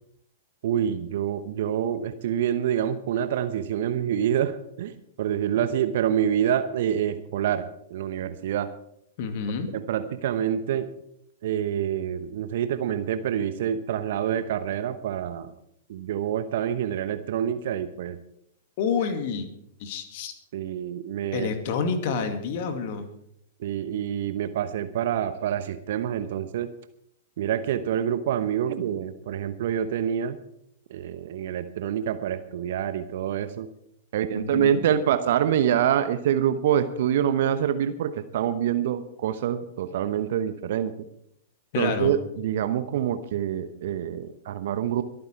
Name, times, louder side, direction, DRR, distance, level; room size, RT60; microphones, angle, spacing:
voice 1, 0.6-8.7 9.7-10.9 11.4-15.5 15.9-18.2 20.5-21.5 23.6-26.7 27.4-30.4 30.9-33.7 34.1-40.9 41.8-45.0, right 9 dB, 55° right, 11 dB, 1.0 m, -26 dB
voice 2, 9.2-9.7 18.8-19.5 19.8-20.3 21.3-23.1 34.3-34.8 41.7-42.1, left 5 dB, 50° left, 8 dB, 2.3 m, -28 dB
23.0 x 9.3 x 4.6 m, 0.72 s
figure-of-eight pair, 105°, 0 cm